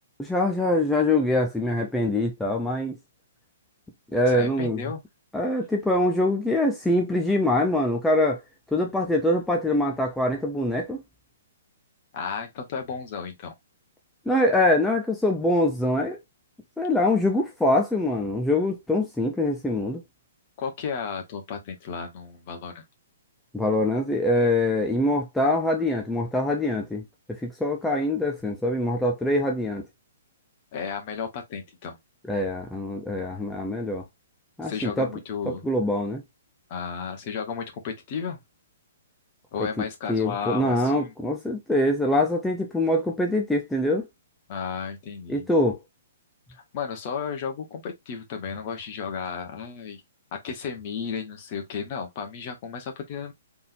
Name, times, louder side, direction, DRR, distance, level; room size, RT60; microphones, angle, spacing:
voice 1, 0.2-3.0 4.1-4.8 5.3-8.4 8.7-11.0 14.3-16.2 16.8-20.0 23.5-27.0 27.3-29.8 32.3-34.0 34.6-35.1 35.5-36.2 40.1-44.1 45.3-45.8, left 1 dB, 5° left, 0.7 m, -24 dB
voice 2, 4.3-5.0 12.1-13.5 20.6-22.8 30.7-32.0 34.6-35.6 36.7-38.4 39.5-41.1 44.5-45.5 46.5-50.0 50.3-53.3, left 6 dB, 40° left, 1.4 m, -33 dB
3.8 x 3.6 x 2.7 m
figure-of-eight pair, 120°, 0 cm